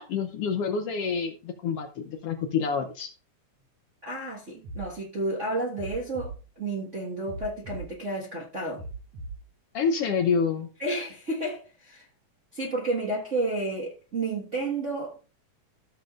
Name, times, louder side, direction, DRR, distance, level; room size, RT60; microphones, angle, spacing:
voice 1, 0.0-3.1 9.7-10.7, left 6 dB, 65° left, 1.6 m, -27 dB
voice 2, 4.0-8.8 10.8-12.0 12.5-15.2, right 2 dB, 30° right, 1.5 m, -31 dB
sound 1, 4.6-4.9 5.8-6.4 7.3-7.9 8.8-9.4, right 2 dB, 70° right, 3.0 m, -38 dB
14.5 x 7.3 x 2.5 m
omnidirectional pair, 3.3 m